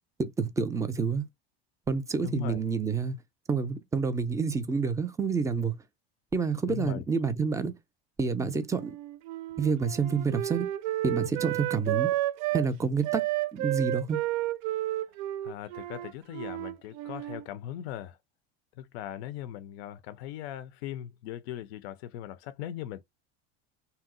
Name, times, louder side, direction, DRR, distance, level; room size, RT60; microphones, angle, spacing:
voice 1, 0.2-1.2 1.9-3.2 3.5-5.7 6.3-7.7 8.2-9.0 9.6-10.7 11.0-12.1 12.5-13.2 13.5-14.2, right 5 dB, 10° right, 0.4 m, -28 dB
voice 2, 2.2-2.6 6.7-7.0 15.4-18.2 18.8-23.0, left 11 dB, 85° left, 0.5 m, -39 dB
Wind instrument woodwind instrument, 8.7-12.7 13.0-17.5, right 15 dB, 75° right, 0.4 m, -32 dB
2.8 x 2.0 x 3.6 m
supercardioid pair, 105°, 31 cm